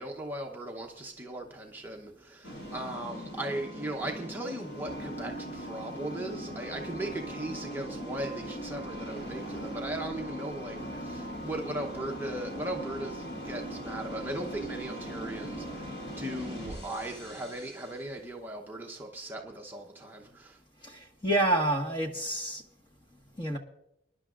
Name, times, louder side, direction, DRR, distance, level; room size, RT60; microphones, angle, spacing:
voice 1, 0.0-20.6, right 1 dB, 10° right, 0 dB, 0.8 m, -38 dB
sound 1, 2.4-18.1, right 1 dB, 85° left, 6.1 m, -40 dB
voice 2, 20.8-22.6 23.4-23.6, right 1 dB, 25° left, 2 dB, 1.5 m, -28 dB
26.0 x 11.0 x 2.5 m, 0.80 s
head